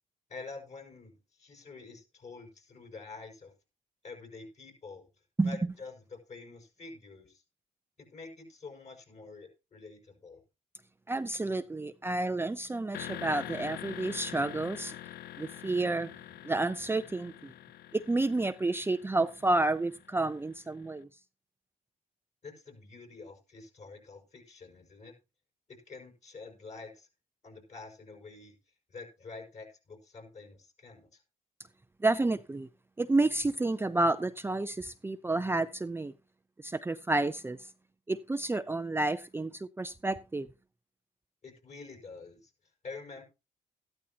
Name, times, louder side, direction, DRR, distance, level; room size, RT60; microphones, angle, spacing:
voice 1, 0.3-3.5 4.0-5.1 5.4-7.4 8.0-10.4 22.4-25.1 25.7-27.1 27.4-31.2 41.4-43.2, left 4 dB, 45° left, 5.6 m, -47 dB
voice 2, 11.1-14.9 15.4-16.1 16.4-17.5 17.9-21.1 32.0-32.7 33.0-36.1 36.6-37.6 38.1-40.5, right 2 dB, 15° right, 0.5 m, -30 dB
sound 1, 12.9-20.7, left 13 dB, 75° left, 0.5 m, -45 dB
13.5 x 12.0 x 2.9 m
cardioid pair, 80°, 16 cm